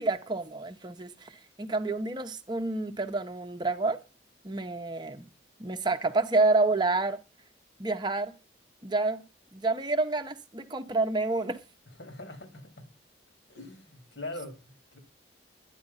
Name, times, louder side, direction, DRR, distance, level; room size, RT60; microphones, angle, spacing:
voice 1, 0.0-1.3 1.6-4.0 4.4-5.2 5.6-7.2 7.8-8.3 8.8-9.2 9.5-11.6, right 3 dB, 25° right, 0.8 m, -28 dB
voice 2, 12.0-12.9 13.5-15.0, left 2 dB, 75° left, 2.8 m, -42 dB
12.0 x 9.9 x 5.5 m
head